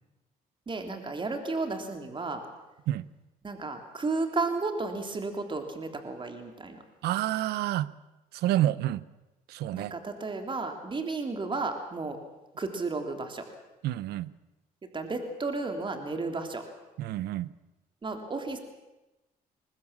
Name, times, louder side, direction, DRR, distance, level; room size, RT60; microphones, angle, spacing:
voice 1, 0.7-2.4 3.4-6.8 9.7-12.2 12.6-13.4 14.9-16.6 18.0-18.6, right 3 dB, 30° right, 5 dB, 3.3 m, -33 dB
voice 2, 7.0-7.9 8.3-9.0 9.5-9.9 13.8-14.3 17.0-17.5, right 14 dB, 85° right, 19 dB, 0.7 m, -28 dB
23.0 x 21.0 x 7.3 m, 1.0 s
cardioid pair, 90°, 16 cm